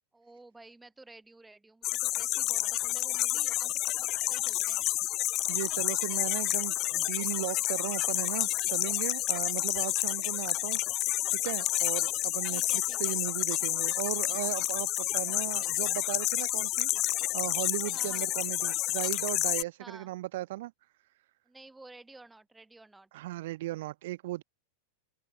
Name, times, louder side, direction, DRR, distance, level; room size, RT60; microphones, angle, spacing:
voice 1, 0.1-4.8 10.5-10.7 12.5-13.2 17.9-18.3 19.8-20.1 21.4-23.1, right 2 dB, 10° right, 6.8 m, -53 dB
sound 1, 1.8-19.6, left 17 dB, 45° left, 0.5 m, -30 dB
voice 2, 5.5-11.1 11.3-16.9 17.3-20.7 23.1-24.4, right 17 dB, 65° right, 0.7 m, -36 dB
open air
hypercardioid pair, 105°, 0 cm